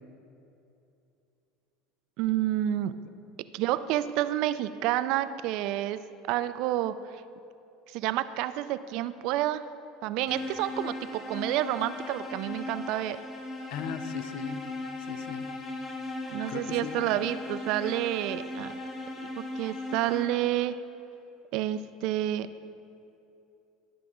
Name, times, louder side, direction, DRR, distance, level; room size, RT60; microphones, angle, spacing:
voice 1, 2.2-2.9 3.5-6.0 6.3-7.1 7.9-9.7 10.0-13.2 16.3-18.7 19.2-20.8 21.5-22.5, right 13 dB, 65° right, 14 dB, 0.3 m, -29 dB
sound 1, 10.3-20.6, left 2 dB, 35° left, 1.4 m, -38 dB
voice 2, 13.7-14.6 15.1-15.5 16.5-17.2, left 8 dB, 70° left, 10 dB, 0.5 m, -38 dB
12.0 x 5.9 x 3.6 m, 2.7 s
hypercardioid pair, 90°, 0 cm